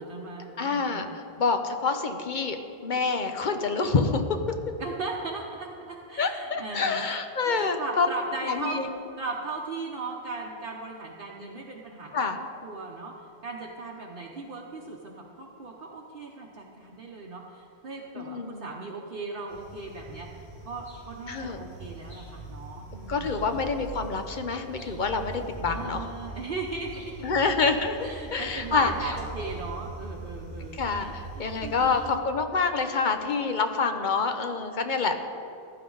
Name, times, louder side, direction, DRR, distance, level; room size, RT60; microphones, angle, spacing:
voice 1, 0.0-1.2 4.8-8.8 9.2-13.1 13.4-20.3 20.6-23.6 25.7-27.6 28.0-32.2, right 3 dB, 55° right, -2 dB, 1.0 m, -38 dB
voice 2, 0.6-4.2 6.2-8.1 8.5-9.0 12.1-12.4 18.2-18.7 21.3-21.6 23.1-26.1 27.2-29.1 30.7-35.1, left 4 dB, 50° left, 7 dB, 0.9 m, -27 dB
sound 1, 19.5-32.1, right 3 dB, 80° left, 3.0 m, -42 dB
15.0 x 11.5 x 3.9 m, 2.8 s
omnidirectional pair, 1.1 m